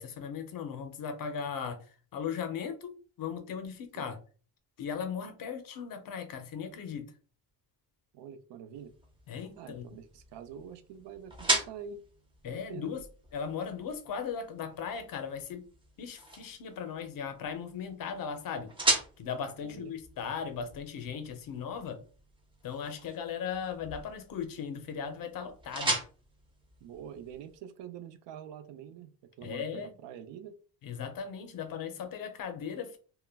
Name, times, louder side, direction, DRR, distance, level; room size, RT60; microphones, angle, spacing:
voice 1, 0.0-1.9 2.1-4.2 4.8-7.1 9.3-9.9 12.4-13.0 13.3-15.6 16.0-18.7 19.2-22.0 22.6-26.0 29.4-29.9 30.8-33.0, left 7 dB, 50° left, 0.5 m, -37 dB
voice 2, 8.1-8.9 9.6-12.0 12.4-12.9 19.6-19.9 26.8-29.1 29.4-30.5, right 8 dB, 75° right, 0.5 m, -45 dB
sound 1, 8.7-27.6, right 1 dB, 15° right, 0.4 m, -38 dB
2.2 x 2.1 x 3.3 m
cardioid pair, 165°, 44 cm